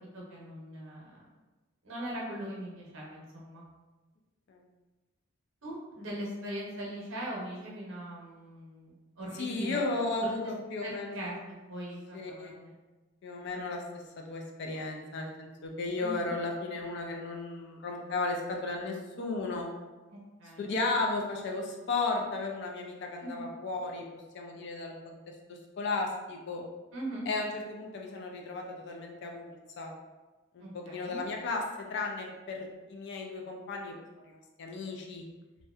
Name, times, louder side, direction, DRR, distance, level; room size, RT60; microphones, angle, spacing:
voice 1, 0.0-1.2 1.8-3.6 5.6-9.8 10.2-10.3 10.8-12.7 16.0-16.3 20.1-20.7 23.2-23.5 26.9-27.3 30.6-31.2, right 1 dB, 65° right, -4 dB, 0.8 m, -40 dB
voice 2, 9.3-11.4 12.1-12.5 13.2-13.8 14.3-19.7 20.6-24.1 24.3-25.2 25.5-26.6 27.3-29.9 30.5-31.6 31.9-33.9 34.3-35.2, left 3 dB, 55° left, 1 dB, 0.4 m, -34 dB
2.6 x 2.1 x 2.3 m, 1.2 s
head